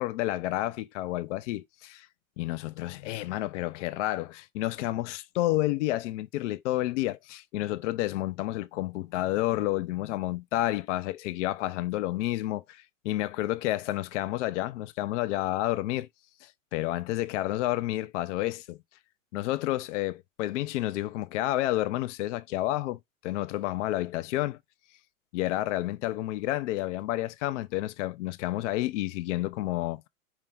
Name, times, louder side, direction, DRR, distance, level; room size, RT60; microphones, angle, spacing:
voice 1, 0.0-2.1 2.4-16.1 16.4-18.8 19.3-24.6 25.3-30.0, left 16 dB, 60° left, 0.6 m, -30 dB
4.6 x 2.7 x 3.4 m
hypercardioid pair, 105°, 41 cm